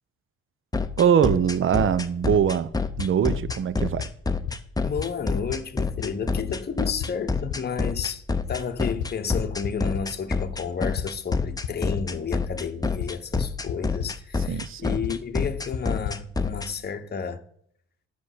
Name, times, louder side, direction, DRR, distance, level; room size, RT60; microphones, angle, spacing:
sound 1, 0.7-16.7, left 4 dB, 10° left, 0.7 m, -27 dB
voice 1, 1.0-2.7 3.0-4.1 14.5-15.0, right 8 dB, 45° right, 0.6 m, -22 dB
sound 2, 3.0-3.1 3.5-3.6 4.0-4.1 4.5-4.6 5.0-5.1 5.5-5.6 6.0-6.1 6.5-6.6 7.0-7.1 7.5-7.6 8.0-8.1 8.5-8.6 9.0-10.0 11.0-12.1 13.0-13.1 13.4-13.7 14.0-14.1 15.0-15.1 15.4-15.5 15.7-15.8 16.0-16.2, left 10 dB, 85° left, 0.8 m, -30 dB
voice 2, 4.8-17.4, left 6 dB, 35° left, 0.9 m, -31 dB
10.5 x 5.2 x 8.1 m
cardioid pair, 90°, 30 cm